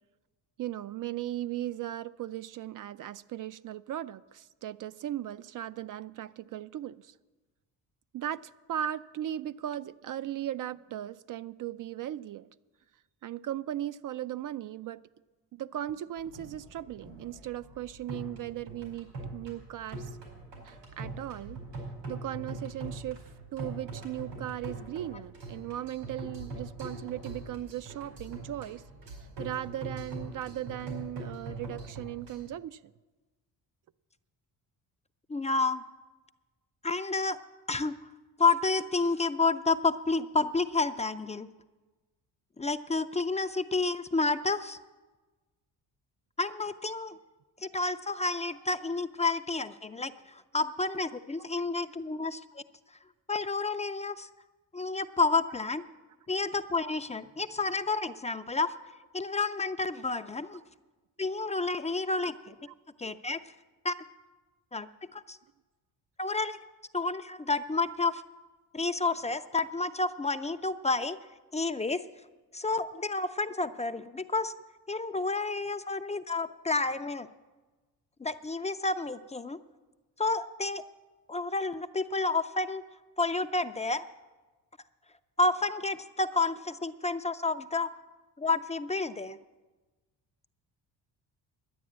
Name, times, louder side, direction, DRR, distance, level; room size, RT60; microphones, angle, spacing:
voice 1, 0.6-7.1 8.1-12.5 13.2-15.0 15.5-20.2 20.6-21.6 22.1-28.8 29.4-32.8 51.6-51.7 62.0-62.2 89.3-89.4, right 12 dB, 55° right, 0.5 m, -37 dB
sound 1, 16.2-32.5, right 2 dB, 90° right, 4.7 m, -42 dB
voice 2, 35.3-35.8 36.8-37.4 37.7-37.9 38.4-41.5 42.6-44.8 46.4-47.2 47.6-52.6 53.3-54.3 54.7-55.8 56.3-58.7 59.1-60.6 61.2-62.6 63.0-63.4 63.8-63.9 64.7-65.4 66.2-66.6 66.9-68.2 68.7-71.2 71.5-72.0 72.5-74.5 74.9-77.3 78.2-79.6 80.2-80.8 81.3-82.8 83.2-84.0 85.4-87.9 88.4-89.4, left 3 dB, 15° left, 0.4 m, -30 dB
11.0 x 9.3 x 8.6 m
cardioid pair, 85°, 40 cm